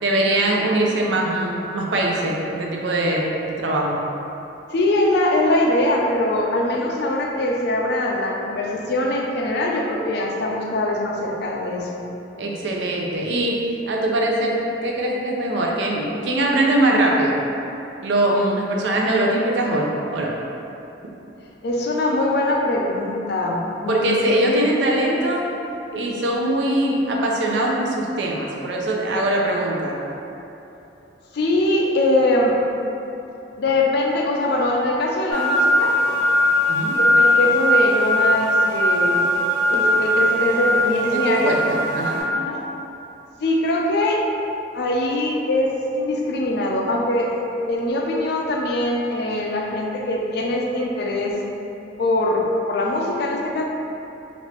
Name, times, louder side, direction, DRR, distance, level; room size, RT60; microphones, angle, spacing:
voice 1, 0.0-4.0 12.4-13.6 13.9-17.4 18.0-20.3 23.9-25.4 25.9-29.9 36.7-36.9 41.1-42.2, right 1 dB, 75° right, -2 dB, 0.5 m, -22 dB
voice 2, 4.7-12.1 21.6-24.4 31.3-32.6 33.6-36.0 36.9-39.3 39.7-41.6 42.3-42.6 43.4-44.2 44.7-51.4 52.0-53.6, left 1 dB, 65° left, -1 dB, 0.4 m, -22 dB
sound 1, 35.3-42.2, left 1 dB, 5° left, 0.9 m, -19 dB
3.2 x 2.5 x 3.1 m, 2.9 s
head